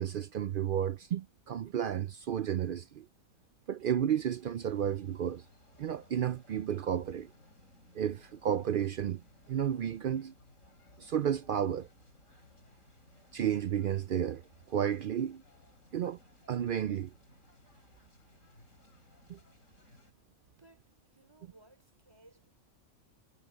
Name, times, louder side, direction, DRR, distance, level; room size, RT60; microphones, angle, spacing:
voice 1, 0.0-3.1 3.7-5.4 5.8-7.3 7.9-9.2 9.5-10.3 11.0-11.9 13.3-14.4 14.7-15.4 15.9-16.2 16.5-17.1 19.3-19.4, right 9 dB, 70° right, 0.5 m, -32 dB
sound 1, 4.1-20.1, left 1 dB, 70° left, 6.7 m, -61 dB
voice 2, 20.6-22.5, right 2 dB, 20° right, 4.4 m, -61 dB
omnidirectional pair, 1.4 m